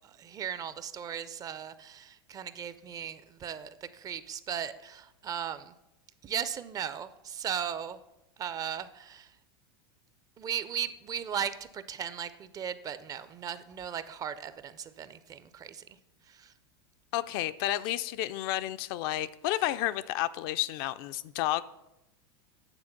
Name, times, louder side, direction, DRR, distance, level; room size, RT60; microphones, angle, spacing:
voice 1, 0.0-5.7 6.2-8.0 8.4-9.4 10.4-15.8 16.3-16.5, right 8 dB, 25° right, 14 dB, 0.4 m, -37 dB
voice 2, 17.1-21.6, left 14 dB, 60° left, 13 dB, 0.4 m, -31 dB
8.9 x 3.6 x 5.8 m, 0.93 s
supercardioid pair, 120°, 14 cm